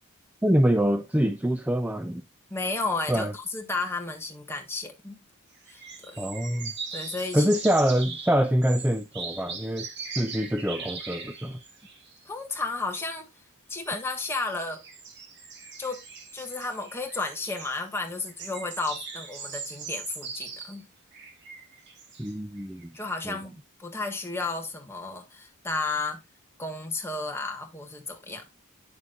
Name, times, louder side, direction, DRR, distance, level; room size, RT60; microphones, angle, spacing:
voice 1, 0.4-2.2 3.1-3.3 6.2-6.7 7.3-11.6 22.2-22.9 23.3-23.4, equal, 5° right, 0.4 m, -25 dB
voice 2, 2.5-5.2 5.7-6.3 6.9-7.5 8.1-8.2 12.2-13.3 13.7-14.8 15.8-16.0 16.3-20.9 22.9-26.2 26.6-28.4, left 3 dB, 10° left, 1.4 m, -33 dB
sound 1, 5.5-12.3 13.8-20.8 21.1-23.2, right 5 dB, 55° right, 1.7 m, -40 dB
9.5 x 7.0 x 2.4 m
head